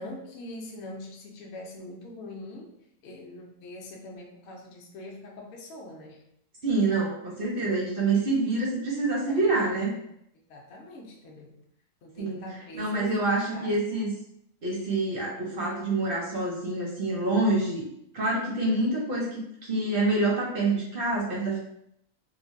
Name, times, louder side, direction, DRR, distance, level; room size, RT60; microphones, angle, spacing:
voice 1, 0.0-2.7 3.0-6.2 7.6-7.8 9.3-10.0 10.5-11.6 12.0-13.8, left 1 dB, 60° left, -1 dB, 0.7 m, -43 dB
voice 2, 6.6-9.9 12.2-12.4 12.7-14.1 14.6-17.8 18.1-21.6, right 2 dB, 60° right, -2 dB, 0.6 m, -26 dB
3.2 x 2.1 x 2.5 m, 0.73 s
omnidirectional pair, 1.5 m